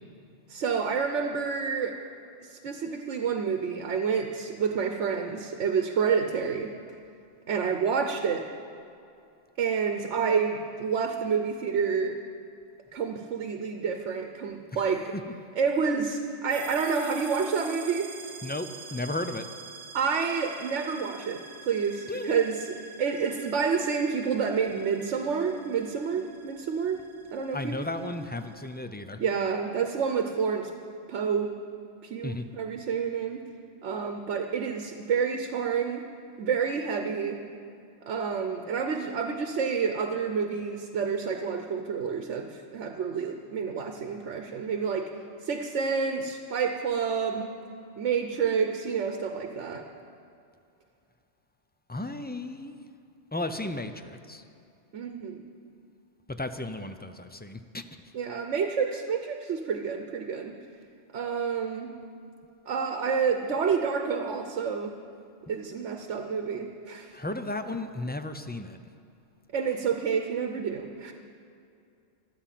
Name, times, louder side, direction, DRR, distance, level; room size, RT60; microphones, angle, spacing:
voice 1, 0.5-2.0 2.4-6.7 7.5-8.5 9.6-12.2 12.9-15.1 15.6-18.1 19.9-27.0 27.3-27.8 29.2-30.7 31.1-31.5 32.0-33.4 33.8-36.1 36.4-37.4 38.0-45.1 45.4-47.6 48.0-49.9 54.9-55.4 58.1-60.6 61.1-61.9 62.7-65.0 65.5-67.1 69.5-71.1, right 6 dB, 80° right, 5 dB, 1.2 m, -29 dB
voice 2, 14.8-15.2 18.4-19.4 22.1-22.4 27.5-29.2 32.2-32.4 51.9-52.8 53.3-54.4 56.3-57.8 67.1-68.8, left 2 dB, 15° left, 8 dB, 0.3 m, -34 dB
sound 1, 16.5-28.8, right 3 dB, 40° right, 1.3 m, -46 dB
13.0 x 12.5 x 7.5 m, 2.5 s
omnidirectional pair, 1.2 m